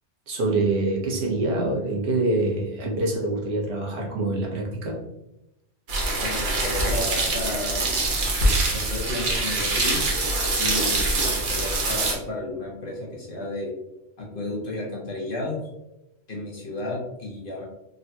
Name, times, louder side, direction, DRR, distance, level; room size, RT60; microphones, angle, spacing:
voice 1, 0.3-5.0, right 2 dB, 90° right, -1 dB, 1.2 m, -25 dB
sound 1, 5.9-12.1, right 2 dB, 50° right, 0.8 m, -24 dB
voice 2, 6.2-7.8 8.2-10.0 10.6-13.7 14.2-15.6 16.3-17.6, left 2 dB, 50° left, -3 dB, 1.0 m, -33 dB
3.7 x 2.7 x 2.2 m, 0.90 s
omnidirectional pair, 1.2 m